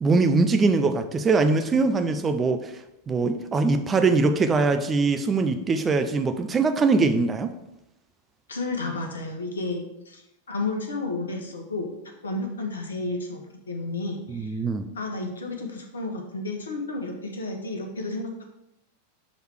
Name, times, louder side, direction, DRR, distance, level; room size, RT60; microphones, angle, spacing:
voice 1, 0.0-2.7 3.1-7.5 14.3-14.9, right 3 dB, 20° right, 7 dB, 0.4 m, -22 dB
voice 2, 8.5-11.9 12.2-14.6 14.9-18.4, left 2 dB, 70° left, 3 dB, 1.0 m, -32 dB
6.2 x 3.3 x 4.8 m, 0.87 s
figure-of-eight pair, 90°, 0 cm